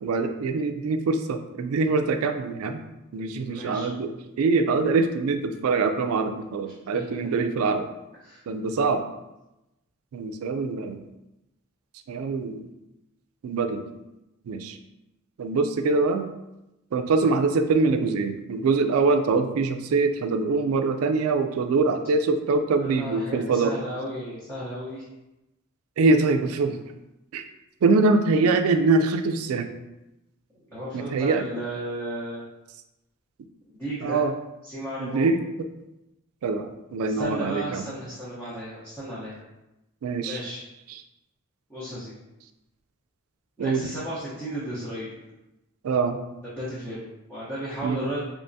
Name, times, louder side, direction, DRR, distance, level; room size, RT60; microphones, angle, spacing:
voice 1, 0.0-2.8 3.1-4.1 4.4-7.9 8.5-9.1 10.1-11.0 12.1-12.6 13.4-13.8 14.5-14.8 15.4-16.3 16.9-23.7 26.0-26.8 27.3-27.4 27.8-29.7 30.9-31.4 34.0-34.3 35.0-35.4 36.4-37.8 40.0-40.4 43.6-43.8 45.8-46.2 47.8-48.0, right 3 dB, 80° right, 8 dB, 0.3 m, -23 dB
voice 2, 3.5-3.9 6.9-7.2 8.2-8.4 22.8-25.0 30.7-32.4 33.6-34.2 34.6-35.3 37.1-39.4 40.2-40.6 41.7-42.1 43.6-45.2 46.5-48.2, right 1 dB, 10° left, -10 dB, 0.7 m, -34 dB
3.4 x 3.0 x 2.6 m, 0.95 s
head